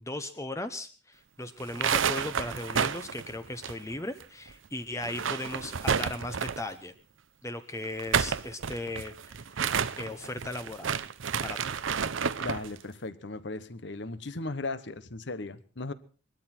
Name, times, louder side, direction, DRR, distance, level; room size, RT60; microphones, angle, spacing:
voice 1, 0.0-6.9 7.4-9.4 9.9-10.9 11.4-11.6, left 1 dB, 15° left, 9 dB, 0.8 m, -37 dB
sound 1, 1.6-4.2 4.5-4.6 5.0-6.7 7.8-12.7, right 7 dB, 75° right, 0.7 m, -30 dB
voice 2, 12.4-15.9, left 3 dB, 60° left, 14 dB, 1.1 m, -37 dB
20.5 x 13.0 x 4.4 m, 0.39 s
head